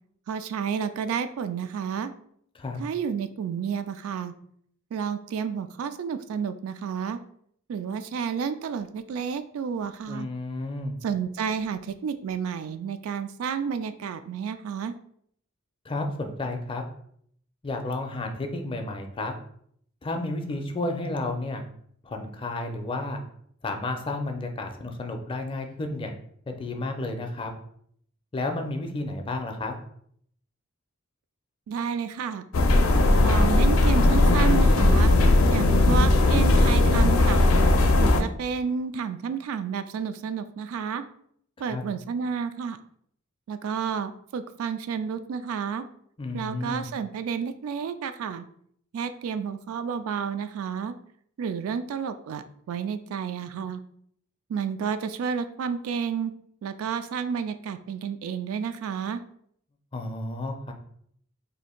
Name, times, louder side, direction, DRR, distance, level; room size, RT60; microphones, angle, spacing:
voice 1, 0.3-2.1 2.8-4.3 4.9-7.2 7.7-10.3 11.0-14.9 31.7-32.4 33.2-35.1 35.5-37.5 38.0-41.0 41.6-42.8 43.5-45.9 46.3-48.4 48.9-50.9 51.4-53.8 54.5-56.3 56.6-59.2, right 6 dB, 75° right, 10 dB, 0.3 m, -31 dB
voice 2, 10.1-11.0 15.9-16.8 17.6-19.3 20.0-21.6 22.0-23.2 23.6-26.1 26.5-27.5 28.3-29.7 41.7-41.8 46.2-46.9 59.9-60.7, left 2 dB, 25° left, 4 dB, 0.4 m, -31 dB
sound 1, 32.5-38.2, left 2 dB, 80° left, 0.5 m, -18 dB
2.7 x 2.5 x 4.2 m, 0.66 s
head